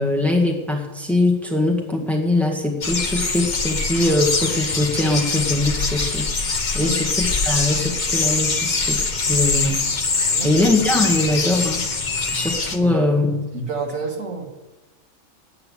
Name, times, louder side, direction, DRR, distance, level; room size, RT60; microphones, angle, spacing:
voice 1, 0.0-6.3 6.7-9.9 10.4-11.8 12.3-13.5, left 2 dB, ahead, 1 dB, 1.7 m, -21 dB
sound 1, 2.8-12.8, left 4 dB, 35° left, 1.1 m, -23 dB
voice 2, 13.5-14.5, right 4 dB, 85° right, 0 dB, 2.5 m, -29 dB
9.6 x 9.0 x 9.9 m, 1.1 s
omnidirectional pair, 1.4 m